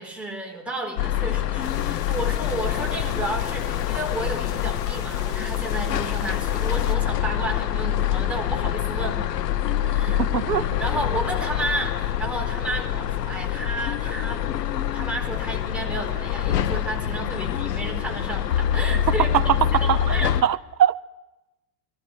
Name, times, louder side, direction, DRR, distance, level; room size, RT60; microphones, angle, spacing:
voice 1, 0.0-9.2 9.8-10.2 10.8-14.5 14.9-20.3, right 2 dB, ahead, 4.3 m, -32 dB
sound 1, 1.0-20.4, left 11 dB, 75° left, 0.9 m, -25 dB
sound 2, 1.6-7.0, left 8 dB, 50° left, 2.2 m, -40 dB
voice 2, 10.2-10.7 19.3-19.4 19.9-20.0 20.4-21.0, right 10 dB, 85° right, 0.8 m, -21 dB
20.5 x 13.5 x 9.2 m
figure-of-eight pair, 85°, 50 cm